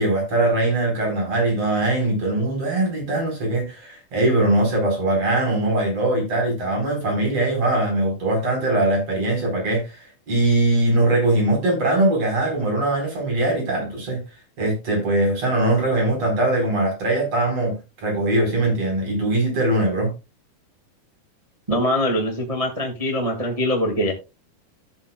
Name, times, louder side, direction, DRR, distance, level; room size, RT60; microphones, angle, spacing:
voice 1, 0.0-14.2 14.6-20.1, right 2 dB, 40° right, 5.4 m, -21 dB
voice 2, 21.7-24.1, equal, 60° right, 0.3 m, -23 dB
14.5 x 7.8 x 2.3 m
omnidirectional pair, 4.4 m